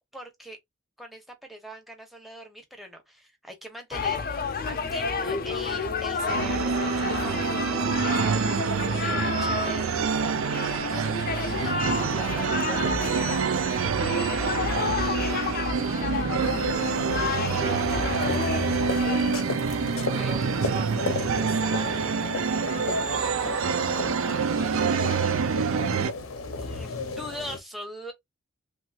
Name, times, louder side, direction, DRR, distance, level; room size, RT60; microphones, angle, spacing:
voice 1, 0.1-0.6 1.0-4.4 4.6-8.4 8.9-11.8 19.9-20.3 26.4-28.1, equal, ahead, 0.9 m, -41 dB
sound 1, 3.9-19.3, left 5 dB, 45° left, 0.5 m, -31 dB
sound 2, 6.3-26.1, right 5 dB, 80° right, 0.5 m, -27 dB
voice 2, 11.9-19.3 19.7-22.1 22.9-25.1, right 2 dB, 20° right, 0.4 m, -43 dB
sound 3, 16.4-27.6, left 4 dB, 80° left, 0.7 m, -34 dB
3.1 x 2.9 x 2.4 m
head